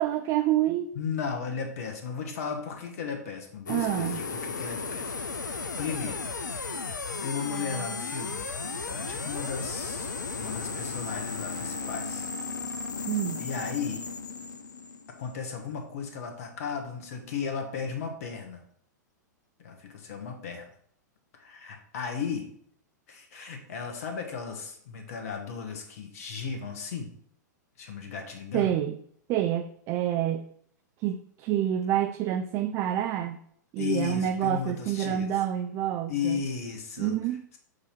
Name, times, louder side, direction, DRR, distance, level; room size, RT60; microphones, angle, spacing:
voice 1, 0.0-0.9 3.7-4.2 13.1-13.4 28.5-29.0 29.3-30.4 31.0-33.4 33.7-36.4 37.0-37.4, right 11 dB, 30° right, 7 dB, 0.4 m, -27 dB
voice 2, 0.9-5.1 5.4-6.3 6.6-6.7 7.2-8.5 8.9-12.3 13.4-14.0 15.2-18.6 19.6-20.7 21.3-22.5 23.1-27.1 27.8-28.7 33.8-35.3 36.1-37.2, left 6 dB, 50° left, 4 dB, 1.2 m, -35 dB
sound 1, 3.7-15.6, left 4 dB, 75° left, 0.5 m, -35 dB
6.5 x 2.9 x 5.7 m, 0.64 s
figure-of-eight pair, 100°, 10 cm